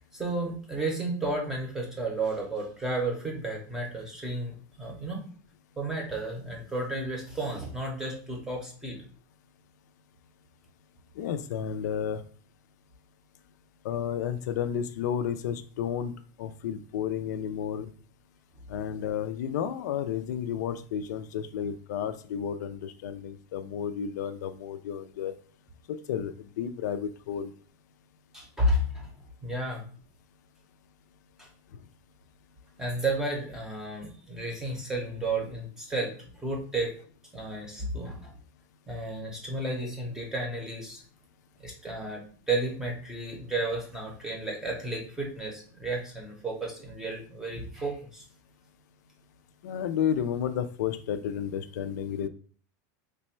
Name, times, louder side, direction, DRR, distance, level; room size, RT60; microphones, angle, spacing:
voice 1, 0.1-5.2 5.8-9.0 28.3-29.1 29.4-29.8 31.4-31.5 32.8-36.9 37.3-38.3 38.9-41.0 41.6-42.2 42.5-48.2, right 2 dB, 5° right, 0 dB, 0.7 m, -32 dB
voice 2, 11.1-12.2 13.8-17.9 18.7-25.3 25.9-27.5 49.6-52.3, left 8 dB, 85° left, 10 dB, 0.4 m, -32 dB
3.3 x 2.2 x 4.3 m, 0.43 s
supercardioid pair, 180°, 9 cm